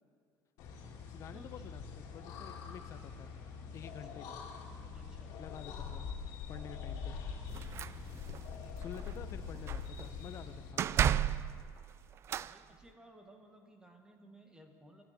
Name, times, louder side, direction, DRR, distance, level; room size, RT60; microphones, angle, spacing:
sound 1, 0.6-10.7, left 6 dB, 65° left, 2.6 m, -44 dB
voice 1, 0.8-3.3 3.7-4.4 5.4-6.1 6.5-7.2 8.7-11.3, left 8 dB, 45° left, 10 dB, 0.8 m, -50 dB
voice 2, 3.9-4.2 4.9-5.4 7.8-8.3 12.4-15.0, right 1 dB, 10° right, 4 dB, 1.6 m, -58 dB
sound 2, 7.5-8.4 8.8-9.1 9.4-10.1 10.8-12.5, right 10 dB, 40° right, 0.3 m, -33 dB
25.0 x 12.5 x 4.3 m, 2.1 s
cardioid pair, 125°, 7 cm